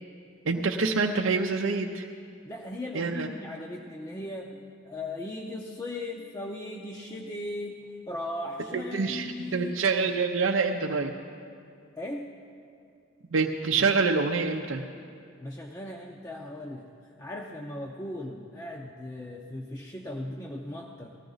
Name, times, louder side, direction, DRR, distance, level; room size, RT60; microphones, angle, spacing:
voice 1, 0.4-2.1 2.9-3.3 8.9-11.1 13.3-14.8, right 4 dB, 80° right, 2 dB, 0.6 m, -26 dB
voice 2, 2.4-7.8 8.1-9.8 12.0-12.3 15.4-16.9 17.2-21.1, left 1 dB, 15° left, -1 dB, 0.6 m, -38 dB
19.0 x 14.5 x 3.9 m, 2.4 s
head